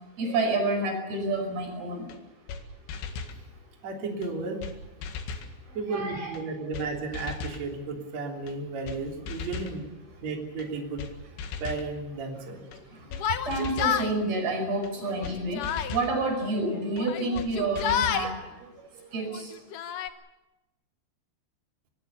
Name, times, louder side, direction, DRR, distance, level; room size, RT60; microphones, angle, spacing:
voice 1, 0.2-2.1 5.9-6.4 13.5-15.6 15.9-18.7 19.1-19.5, right 2 dB, 65° right, 4 dB, 7.1 m, -29 dB
sound 1, 2.1-2.2 2.5-2.6 2.9-3.4 4.2-4.3 4.6-4.8 5.0-5.5 6.3-6.4 6.7-6.9 7.1-7.6 8.5-8.6 8.9-9.0 9.3-9.8 10.6-10.7 11.0-11.1 11.4-11.9 12.7-12.8 13.1-13.2 13.5-14.0 14.8-14.9 15.2-15.4 15.6-16.1 17.0-17.1 17.4-17.5 17.8-18.3, left 5 dB, 85° left, 4.1 m, -37 dB
voice 2, 3.8-4.6 5.7-9.9 10.2-11.0 11.6-12.6, right 3 dB, 40° right, 2 dB, 4.4 m, -33 dB
Yell, 13.1-14.1 15.0-16.0 17.0-18.3 19.2-20.1, left 9 dB, 65° left, 2.4 m, -29 dB
24.5 x 21.0 x 6.9 m, 1.0 s
omnidirectional pair, 4.9 m